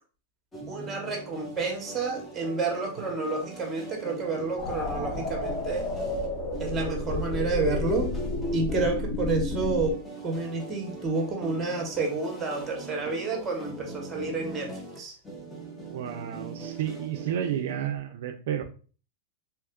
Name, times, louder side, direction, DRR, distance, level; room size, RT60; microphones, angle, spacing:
sound 1, 0.5-18.0, right 3 dB, 10° left, 0.6 m, -41 dB
voice 1, 0.7-5.9 6.6-8.1 8.5-10.0 10.2-15.1, right 3 dB, 15° right, 2 dB, 0.9 m, -30 dB
sound 2, 4.6-9.9, left 2 dB, 35° left, 1.0 m, -31 dB
voice 2, 15.9-18.6, right 9 dB, 65° right, 6 dB, 0.3 m, -31 dB
2.9 x 2.3 x 3.5 m, 0.38 s
supercardioid pair, 155°, 0 cm